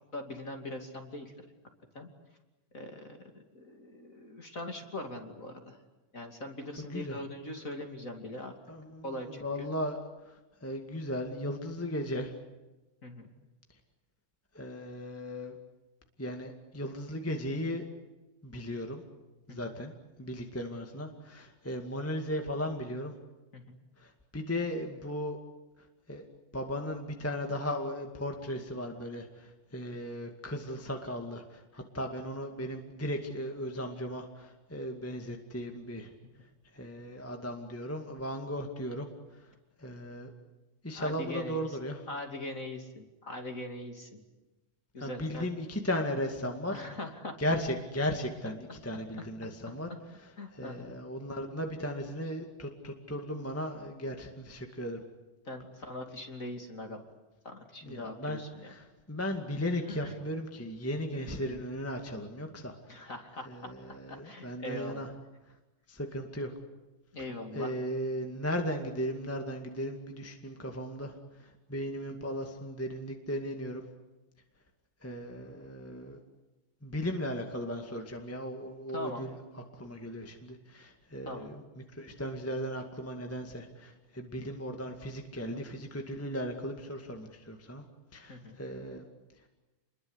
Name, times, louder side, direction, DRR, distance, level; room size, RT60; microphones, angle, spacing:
voice 1, 0.1-1.4 1.9-2.1 2.7-5.8 6.1-8.6 9.0-9.7 13.0-13.3 19.5-19.7 23.5-23.8 40.9-41.8 42.1-44.2 44.9-45.5 46.7-47.3 50.4-50.9 55.5-57.0 57.4-58.7 59.9-60.1 61.1-61.6 62.9-63.7 64.1-65.1 67.1-67.7 78.9-79.3 81.2-81.5 88.3-88.6, left 1 dB, 25° left, 4 dB, 2.7 m, -41 dB
voice 2, 8.7-10.0 10.3-12.3 14.5-15.6 16.2-17.8 18.4-19.0 19.5-19.9 20.2-23.1 24.0-25.4 26.1-26.2 26.5-36.1 36.7-39.1 39.8-40.3 40.8-42.0 45.0-46.7 47.4-48.6 48.8-49.9 50.5-55.0 57.8-58.4 58.7-63.1 63.5-65.1 65.9-66.5 67.5-71.1 71.4-73.8 75.0-76.2 76.8-79.4 79.8-87.8 88.1-89.0, equal, 5° left, 4 dB, 1.4 m, -36 dB
29.0 x 22.0 x 8.2 m, 1.1 s
omnidirectional pair, 3.9 m